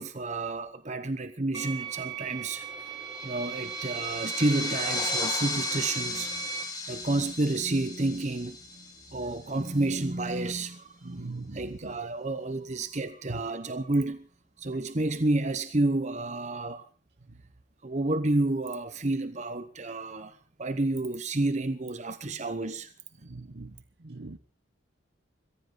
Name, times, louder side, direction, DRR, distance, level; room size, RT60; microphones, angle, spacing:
voice 1, 0.0-2.9 3.2-8.8 9.1-14.3 14.6-16.9 17.8-22.9, right 2 dB, 40° right, 1.0 m, -30 dB
sound 1, 1.5-6.6, right 9 dB, 20° right, 1.9 m, -38 dB
sound 2, 2.7-9.6, left 2 dB, 20° left, 3.1 m, -35 dB
voice 2, 11.0-11.9 13.3-13.4 23.3-23.7 24.0-24.4, right 2 dB, 60° right, 1.1 m, -39 dB
23.0 x 15.5 x 3.9 m
head